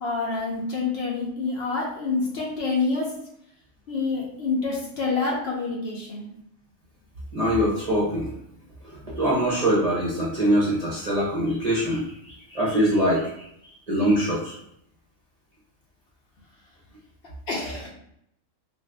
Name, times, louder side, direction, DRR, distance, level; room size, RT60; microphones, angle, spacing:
voice 1, 0.0-3.1 3.9-6.2 17.5-17.9, left 3 dB, 60° left, -3 dB, 0.9 m, -27 dB
voice 2, 7.3-8.3 8.8-13.5 13.9-14.6, equal, 40° right, -6 dB, 0.7 m, -23 dB
2.6 x 2.5 x 3.4 m, 0.74 s
omnidirectional pair, 1.4 m